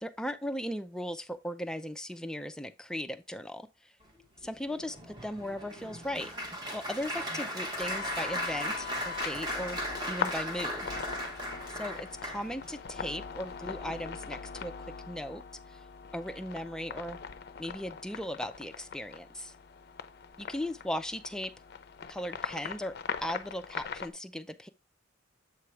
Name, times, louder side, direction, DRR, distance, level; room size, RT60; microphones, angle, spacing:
voice 1, 0.0-3.9 4.4-5.0 5.2-9.8 10.1-10.9 11.7-14.7 15.1-15.4 15.7-15.8 16.1-17.2 17.6-19.5 20.4-21.5 22.1-24.7, equal, 5° left, 0.4 m, -37 dB
Applause, 4.4-12.7 13.4-13.6 13.9-14.1, equal, 20° right, 1.3 m, -37 dB
sound 1, 7.8-24.1, left 6 dB, 55° left, 0.5 m, -41 dB
7.6 x 3.1 x 4.6 m
head